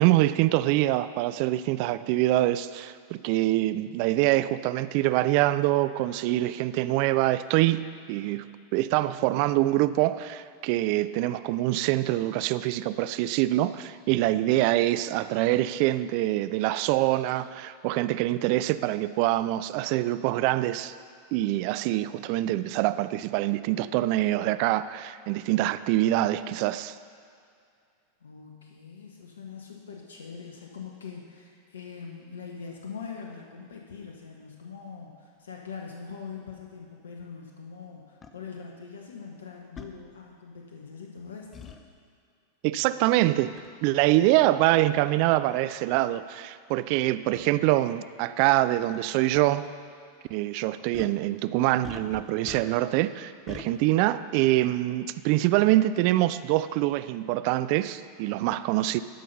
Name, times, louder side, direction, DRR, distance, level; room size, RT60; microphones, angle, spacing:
voice 1, 0.0-20.9 21.3-26.9 42.6-49.7 50.3-59.0, right 16 dB, 55° right, 15 dB, 0.3 m, -25 dB
voice 2, 28.2-41.6 53.6-54.1, left 6 dB, 80° left, 1 dB, 1.0 m, -42 dB
sound 1, 38.2-38.3 39.8-39.9 41.5-41.8 43.6-43.8 44.6-44.7 45.5-45.6 45.9-46.0 47.3-47.5 48.8-49.0 49.3-49.4 50.9-51.2 51.8-53.0 53.5-53.7, left 5 dB, 25° left, 0.8 m, -43 dB
12.5 x 5.6 x 5.4 m, 2.4 s
hypercardioid pair, 95°, 0 cm